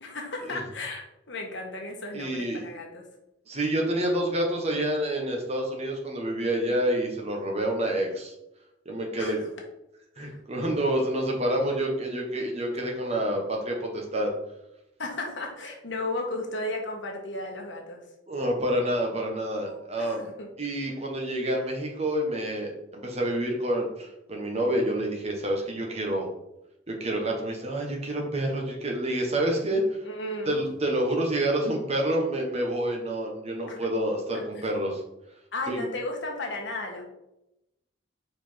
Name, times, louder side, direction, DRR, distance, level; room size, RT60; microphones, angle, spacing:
voice 1, 0.0-3.1 9.2-9.5 10.2-10.4 15.0-18.0 19.7-20.5 30.0-30.6 33.7-33.8 34.3-34.6 35.5-37.1, left 2 dB, 70° left, 1 dB, 1.5 m, -35 dB
voice 2, 2.1-2.6 3.5-8.3 8.8-9.4 10.2-14.3 18.3-20.3 20.6-26.3 26.9-30.0 30.5-35.0 35.7-35.9, right 1 dB, 35° right, 1 dB, 1.4 m, -28 dB
5.1 x 4.9 x 4.6 m, 0.88 s
head